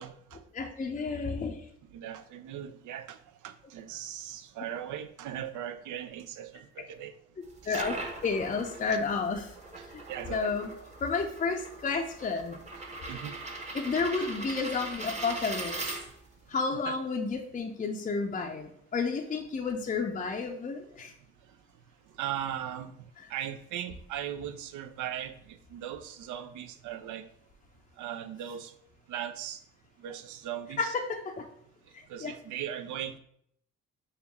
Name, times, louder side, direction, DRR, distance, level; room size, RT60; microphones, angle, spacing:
voice 1, 0.0-0.4 1.9-3.2 3.4-7.1 7.7-7.8 8.8-9.0 10.1-10.5 13.1-13.3 16.5-17.0 22.2-22.9 23.3-25.3 25.7-27.2 28.0-28.7 29.1-29.6 30.0-30.9 32.1-33.2, right 10 dB, 80° right, 9 dB, 0.5 m, -38 dB
voice 2, 0.5-1.6 7.7-7.9 8.2-9.5 10.3-10.7 11.0-12.6 13.7-15.7 16.5-21.1 30.8-31.4 32.2-32.3, left 4 dB, 25° left, 2 dB, 0.5 m, -31 dB
sound 1, 7.4-16.4, right 2 dB, 20° right, 0.9 m, -40 dB
5.4 x 2.2 x 3.4 m, 0.68 s
cardioid pair, 90°, 30 cm